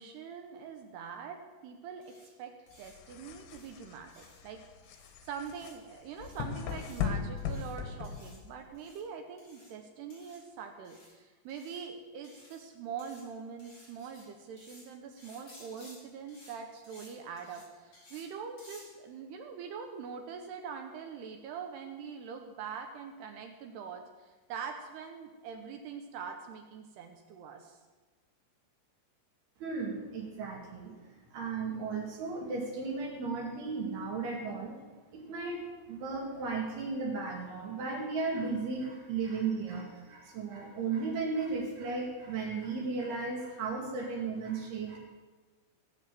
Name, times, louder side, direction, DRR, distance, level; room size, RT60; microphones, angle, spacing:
voice 1, 0.0-2.1 2.4-2.5 2.8-4.6 5.2-27.8, right 6 dB, 75° right, 4 dB, 2.5 m, -43 dB
sound 1, 2.0-2.3 2.7-2.9 3.5-3.7 4.1-4.4 4.8-5.1 5.5-5.7 6.1-6.4 6.7-7.0 7.4-7.7 8.0-8.4 8.7-9.0 9.4-9.7 10.1-10.4 10.8-11.1 11.5-11.8 12.2-12.6 13.0-13.2 13.6-14.2 14.6-14.8 15.2-15.9 16.3-16.5 16.8-17.1 17.4-17.6 17.9-18.2 18.6-18.8, left 1 dB, 35° left, 7.4 m, -56 dB
sound 2, 2.8-8.7, left 7 dB, 85° left, 4.0 m, -38 dB
voice 2, 29.6-31.0 31.3-34.8 35.1-35.6 35.9-45.0, right 4 dB, 55° right, -1 dB, 4.0 m, -35 dB
19.0 x 7.3 x 7.8 m, 1.3 s
omnidirectional pair, 6.0 m